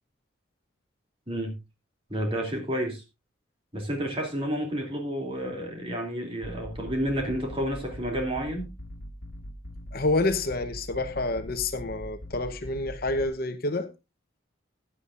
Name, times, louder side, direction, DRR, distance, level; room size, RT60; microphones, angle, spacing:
voice 1, 2.1-3.0 3.7-8.7, equal, 30° right, 2.8 m, -30 dB
sound 1, 6.4-13.3, equal, 65° left, 1.8 m, -42 dB
voice 2, 9.9-13.9, left 2 dB, 45° left, 0.9 m, -28 dB
15.0 x 9.8 x 2.5 m
head